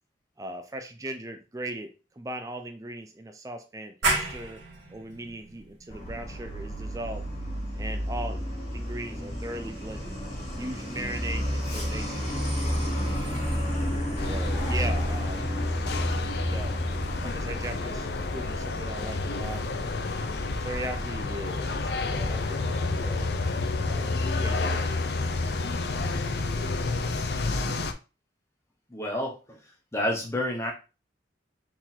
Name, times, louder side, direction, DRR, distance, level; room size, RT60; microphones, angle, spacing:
voice 1, 0.4-4.6 4.9-7.2 7.8-8.5 8.7-10.1 10.5-12.3 14.2-15.6 16.5-16.8 17.2-18.1 18.3-20.2 20.6-23.3 23.8-24.8, right 1 dB, 15° right, 6 dB, 0.4 m, -38 dB
sound 1, 4.0-9.4, right 2 dB, 75° right, 1.8 m, -34 dB
Truck, 5.9-22.1, equal, 30° left, 2.5 m, -32 dB
sound 2, 14.2-27.9, left 3 dB, 55° left, 0.5 m, -30 dB
voice 2, 28.9-29.4 29.9-30.7, left 1 dB, 15° left, 0 dB, 1.1 m, -28 dB
4.7 x 3.8 x 2.8 m, 0.31 s
head